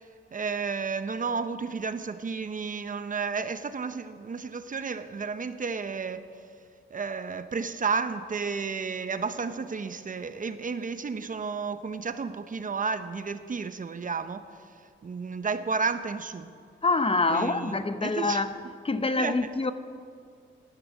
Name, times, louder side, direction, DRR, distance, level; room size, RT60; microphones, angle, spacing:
voice 1, 0.3-6.3 6.9-14.4 15.0-16.5 17.3-18.4 19.2-19.4, right 5 dB, 40° right, 0.8 m, -32 dB
voice 2, 16.8-18.5 18.8-19.7, left 3 dB, 25° left, 0.8 m, -26 dB
12.0 x 11.5 x 8.3 m
cardioid pair, 65°, 21 cm